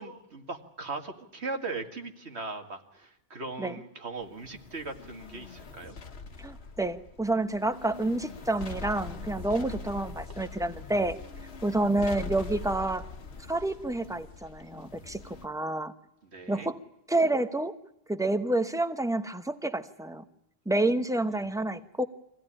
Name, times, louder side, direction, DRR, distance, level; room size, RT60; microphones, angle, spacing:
voice 1, 0.0-6.0 16.3-16.7 21.3-21.4, right 3 dB, 80° right, 5 dB, 2.2 m, -39 dB
sound 1, 4.2-15.5, left 4 dB, 75° left, 1.4 m, -43 dB
voice 2, 6.4-11.2 11.6-13.1 13.5-15.9 16.5-16.8 17.1-17.8 18.1-20.2 20.7-22.0, right 2 dB, 5° right, 10 dB, 0.9 m, -29 dB
24.5 x 16.5 x 10.0 m, 0.82 s
omnidirectional pair, 1.1 m